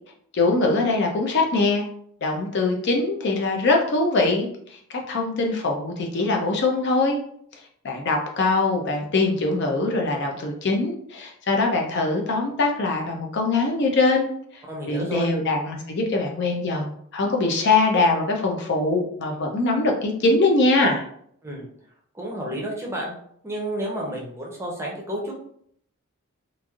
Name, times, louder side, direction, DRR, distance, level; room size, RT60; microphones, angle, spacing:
voice 1, 0.3-1.8 2.2-7.2 7.8-14.3 14.9-21.1, left 3 dB, 50° left, 1 dB, 0.5 m, -22 dB
voice 2, 14.7-15.3 21.4-21.7 22.1-23.1 23.4-25.3, right 1 dB, 10° right, -2 dB, 0.6 m, -30 dB
3.1 x 2.5 x 2.3 m, 0.66 s
head